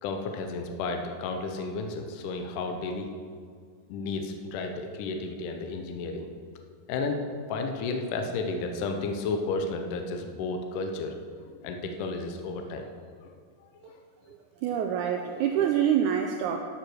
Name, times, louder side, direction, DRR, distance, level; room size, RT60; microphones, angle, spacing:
voice 1, 0.0-3.1 3.9-6.3 6.9-7.2 7.5-11.1 11.4-12.9 13.9-14.0, left 3 dB, 70° left, 4 dB, 2.3 m, -32 dB
voice 2, 14.3-16.6, right 9 dB, 90° right, 4 dB, 1.7 m, -26 dB
11.5 x 7.7 x 6.2 m, 2.1 s
omnidirectional pair, 4.1 m